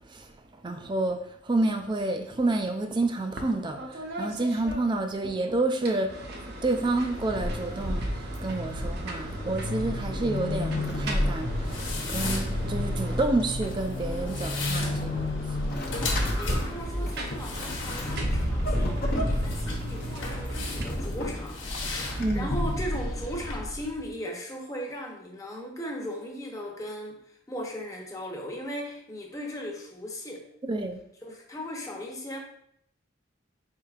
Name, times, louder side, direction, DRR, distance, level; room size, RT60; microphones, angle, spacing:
voice 1, 0.0-16.2 22.2-22.5 30.7-31.0, right 2 dB, 25° right, 0.4 m, -29 dB
sound 1, 3.4-3.5 3.8-5.3 5.7-13.8 15.6-20.8, right 1 dB, 55° right, 0.7 m, -40 dB
Vehicle / Accelerating revving vroom / Squeak, 6.9-24.1, left 1 dB, 50° left, 0.7 m, -31 dB
sound 2, 11.4-23.6, left 2 dB, 90° left, 1.1 m, -37 dB
voice 2, 16.1-27.2 27.5-30.5 31.2-32.4, equal, 15° left, 0.7 m, -37 dB
4.5 x 4.2 x 2.4 m
head